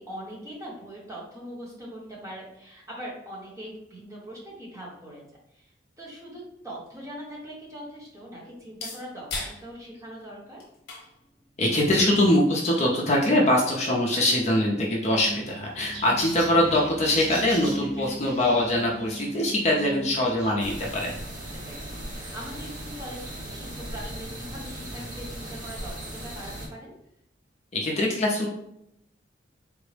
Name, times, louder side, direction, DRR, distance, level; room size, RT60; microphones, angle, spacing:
voice 1, 0.0-5.2 5.5-10.6 17.1-17.5 21.6-25.9 26.2-26.9, equal, 15° right, -4 dB, 0.9 m, -41 dB
sound 1, 6.4-14.3, left 3 dB, 60° left, 0.8 m, -44 dB
voice 2, 11.6-21.2 27.7-28.5, left 1 dB, 35° left, -2 dB, 0.5 m, -23 dB
sound 2, 15.2-20.7, right 1 dB, 65° right, 1.0 m, -38 dB
sound 3, 20.6-26.7, right 1 dB, 45° right, 0.7 m, -37 dB
3.7 x 2.0 x 3.2 m, 0.80 s
head